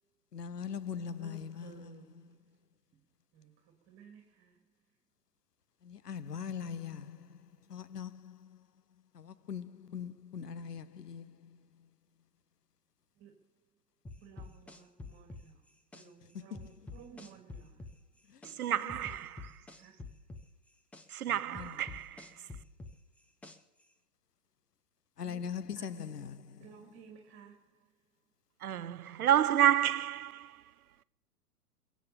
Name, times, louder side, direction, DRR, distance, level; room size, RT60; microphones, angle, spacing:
voice 1, 0.3-2.3 5.8-8.7 9.1-11.9 16.5-16.7 18.3-18.4 18.8-18.9 21.3-21.8 25.2-26.7, left 7 dB, 80° left, 0.9 m, -42 dB
voice 2, 1.1-2.6 2.9-3.0 3.3-4.6 13.2-13.3 14.2-18.0 19.8-20.3 25.2-25.4 25.7-25.9 26.6-28.0, right 7 dB, 25° right, 2.9 m, -56 dB
sound 1, 14.0-16.1 16.5-18.6 18.9-21.1 21.5-23.8, left 3 dB, 5° left, 0.5 m, -47 dB
voice 3, 18.6-19.6 21.1-22.3 28.6-30.6, right 11 dB, 70° right, 0.7 m, -29 dB
22.5 x 7.5 x 7.1 m
figure-of-eight pair, 110°, 46 cm